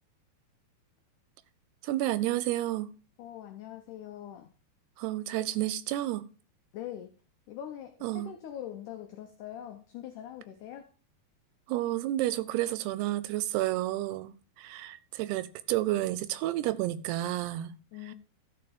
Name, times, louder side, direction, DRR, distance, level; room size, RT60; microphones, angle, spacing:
voice 1, 1.8-2.9 5.0-6.3 8.0-8.3 11.7-17.7, right 15 dB, 85° right, 2.7 m, -31 dB
voice 2, 3.2-4.5 6.7-7.1 7.5-10.9 17.9-18.1, left 11 dB, 85° left, 1.8 m, -43 dB
12.5 x 5.0 x 5.1 m
omnidirectional pair, 4.6 m